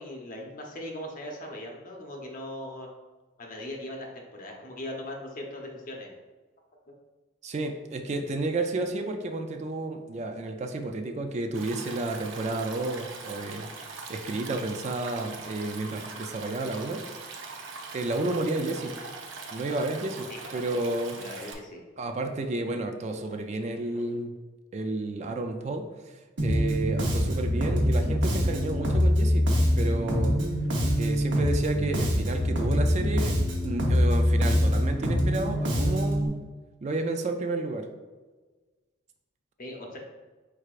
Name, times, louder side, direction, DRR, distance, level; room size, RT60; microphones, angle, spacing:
voice 1, 0.0-2.9 3.4-6.1 20.3-20.7 21.1-21.8 39.6-40.0, left 1 dB, 45° left, 0 dB, 0.8 m, -39 dB
voice 2, 7.4-13.7 14.1-17.1 17.9-19.0 19.5-21.3 22.0-24.4 24.7-29.5 29.8-30.4 31.0-33.3 33.6-36.4 36.8-37.9, right 2 dB, 35° right, 5 dB, 0.4 m, -31 dB
Stream, 11.5-21.5, right 4 dB, 90° right, 0.6 m, -41 dB
Bass guitar, 26.4-36.3, equal, 70° right, 1.0 m, -24 dB
4.7 x 4.6 x 2.4 m, 1.3 s
head